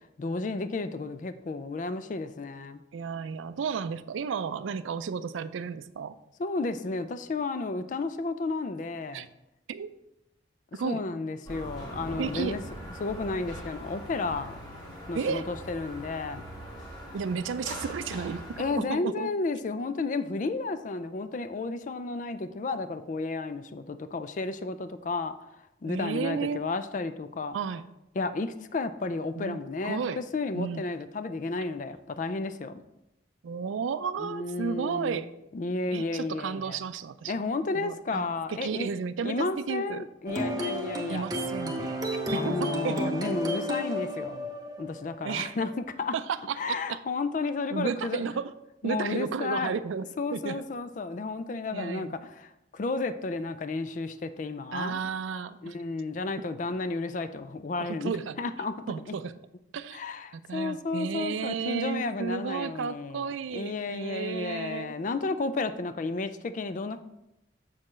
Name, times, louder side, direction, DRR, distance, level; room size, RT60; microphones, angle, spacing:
voice 1, 0.2-2.8 6.4-9.3 10.8-12.6 13.0-14.5 15.1-16.4 18.6-25.3 25.8-27.6 28.2-32.8 34.2-35.2 35.5-36.8 37.3-38.9 39.2-41.3 42.3-44.5 44.8-45.7 46.0-46.1 46.6-48.2 48.8-49.8 50.2-55.0 55.6-58.1 58.4-58.7 59.9-67.0, left 3 dB, 40° left, 12 dB, 0.4 m, -32 dB
voice 2, 2.9-6.2 9.1-9.3 9.7-9.9 10.7-11.0 12.2-12.6 15.1-15.5 17.1-18.4 18.7-19.3 25.8-26.6 27.5-27.8 29.4-30.2 30.6-30.9 33.4-35.3 35.9-37.3 37.7-40.1 41.1-43.1 45.2-45.6 46.1-47.0 47.7-48.5 48.8-50.0 50.3-50.6 51.7-52.2 54.7-55.8 57.8-58.4 58.9-59.3 59.7-60.0 60.3-65.0, right 6 dB, 90° right, 13 dB, 0.4 m, -33 dB
sound 1, 11.5-18.7, equal, 20° left, 1.7 m, -41 dB
sound 2, 40.3-45.8, equal, 20° right, 0.8 m, -32 dB
7.2 x 6.6 x 3.1 m, 0.87 s
head